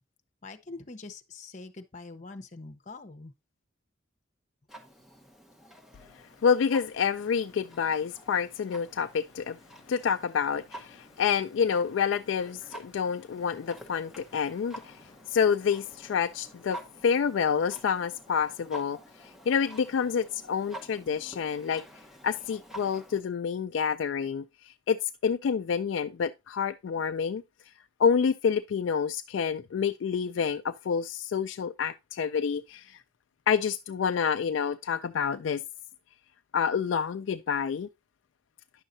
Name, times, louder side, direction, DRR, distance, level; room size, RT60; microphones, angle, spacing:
voice 1, 0.4-3.3, left 3 dB, 40° left, 0.9 m, -44 dB
Clock, 4.7-23.2, right 1 dB, ahead, 1.0 m, -49 dB
voice 2, 6.4-9.6 9.9-21.8 22.2-27.4 28.0-33.0 33.5-35.6 36.5-37.9, left 6 dB, 70° left, 0.3 m, -28 dB
9.9 x 6.4 x 2.6 m
head